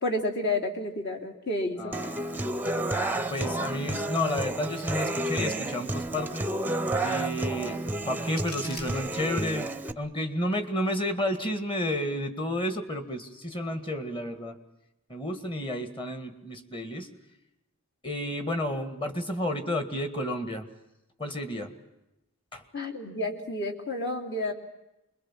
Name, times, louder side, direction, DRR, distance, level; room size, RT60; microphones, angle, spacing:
voice 1, 0.0-2.0 22.7-24.5, left 1 dB, 50° left, 1 dB, 3.2 m, -30 dB
voice 2, 1.8-2.6 3.3-6.5 7.0-14.6 15.1-17.1 18.0-20.7 21.2-21.7 22.5-22.6, left 1 dB, 25° left, 8 dB, 1.9 m, -31 dB
Human voice / Acoustic guitar, 1.9-9.9, right 1 dB, 10° right, 0.8 m, -31 dB
sound 1, 7.9-9.8, left 1 dB, 70° left, 5.3 m, -45 dB
26.0 x 22.0 x 7.4 m, 0.92 s
head